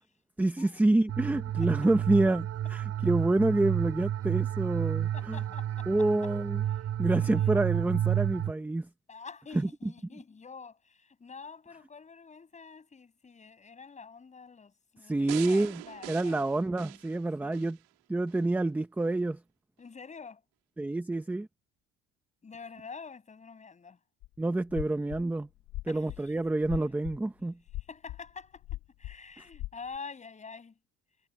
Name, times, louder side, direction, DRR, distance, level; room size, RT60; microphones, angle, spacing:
voice 1, 0.4-5.4 5.9-6.6 7.0-8.9 9.5-9.9 15.1-15.8 16.1-17.8 18.1-19.4 20.8-21.5 24.4-25.5 25.9-27.6, right 2 dB, 5° right, 0.6 m, -28 dB
sound 1, 1.1-8.5, right 11 dB, 45° right, 3.1 m, -30 dB
voice 2, 5.1-5.9 6.7-6.9 7.2-7.6 9.1-16.4 17.4-17.7 19.8-20.5 22.4-24.0 25.9-26.4 27.8-30.8, left 5 dB, 20° left, 7.1 m, -47 dB
sound 2, 15.3-17.8 18.3-18.4, right 21 dB, 85° right, 2.3 m, -43 dB
sound 3, 24.2-24.3 24.7-25.3 25.7-27.2 27.7-28.3 28.6-29.2 29.5-30.0, left 17 dB, 65° left, 2.9 m, -39 dB
cardioid pair, 150°, 35 cm